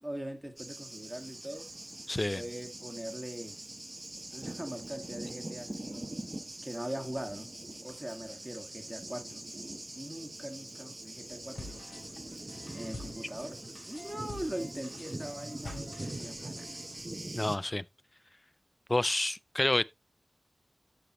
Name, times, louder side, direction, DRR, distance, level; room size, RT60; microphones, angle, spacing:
voice 1, 0.0-1.7 2.3-3.6 4.3-6.0 6.6-7.5 7.8-9.5 9.9-11.8 12.7-16.8, right 1 dB, 10° right, 1.9 m, -41 dB
Thunder, 0.6-17.6, right 1 dB, 25° right, 0.9 m, -43 dB
voice 2, 2.1-2.4 17.4-17.8 18.9-19.8, left 1 dB, 25° left, 0.3 m, -29 dB
sound 1, 11.5-17.0, left 2 dB, 65° left, 3.0 m, -48 dB
13.0 x 5.0 x 3.0 m
wide cardioid pair, 95°, 0 cm